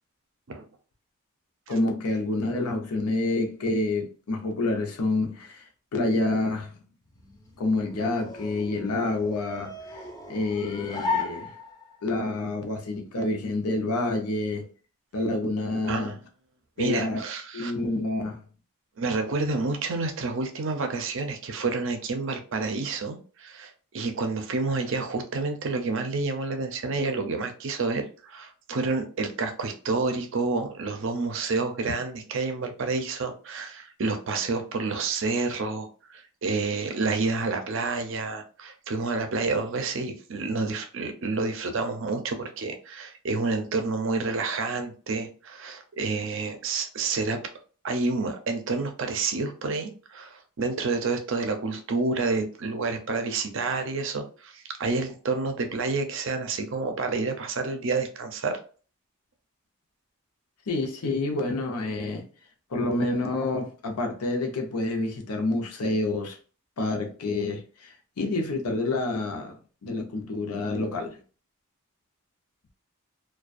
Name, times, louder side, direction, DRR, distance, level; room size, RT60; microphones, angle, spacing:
voice 1, 1.7-6.7 7.6-10.0 10.3-11.5 12.0-14.7 15.1-16.1 16.8-17.2 17.5-18.4 60.7-62.3 62.7-66.4 66.8-69.6 69.8-71.2, left 2 dB, 85° left, 0.6 m, -28 dB
sound 1, 7.1-12.1, left 3 dB, 15° left, 0.4 m, -35 dB
voice 2, 15.9-16.2 16.8-17.7 19.0-47.4 47.8-58.6, right 3 dB, 60° right, 0.5 m, -29 dB
2.3 x 2.2 x 2.5 m
head